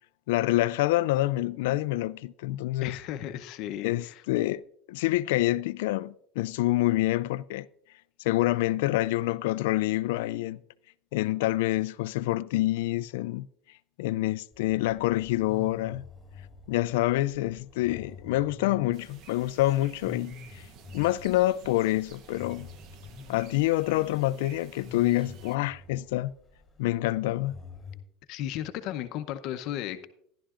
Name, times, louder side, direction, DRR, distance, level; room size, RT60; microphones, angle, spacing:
voice 1, 0.3-3.0 3.8-4.6 4.9-7.7 8.2-10.6 11.1-13.5 14.0-16.0 16.7-20.7 20.9-22.7 23.3-26.3 26.8-27.5, left 16 dB, 85° left, 0.3 m, -27 dB
voice 2, 2.8-4.2 28.3-30.1, left 11 dB, 60° left, 0.7 m, -35 dB
sound 1, 14.5-28.0, left 3 dB, 10° left, 3.2 m, -47 dB
sound 2, 18.9-25.6, right 8 dB, 50° right, 0.8 m, -52 dB
14.0 x 11.5 x 2.5 m
supercardioid pair, 125°, 0 cm